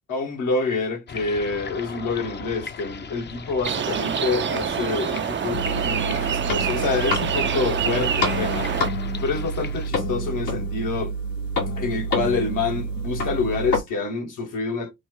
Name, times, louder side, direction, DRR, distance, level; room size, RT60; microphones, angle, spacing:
voice 1, 0.1-8.7 9.2-11.1 11.8-14.9, left 4 dB, 65° left, 1.0 m, -27 dB
sound 1, 1.1-9.9, left 5 dB, 30° left, 0.6 m, -38 dB
sound 2, 3.6-8.9, right 8 dB, 35° right, 0.5 m, -26 dB
sound 3, 5.5-13.8, equal, 80° left, 1.5 m, -28 dB
3.2 x 2.1 x 3.7 m
hypercardioid pair, 40°, 33 cm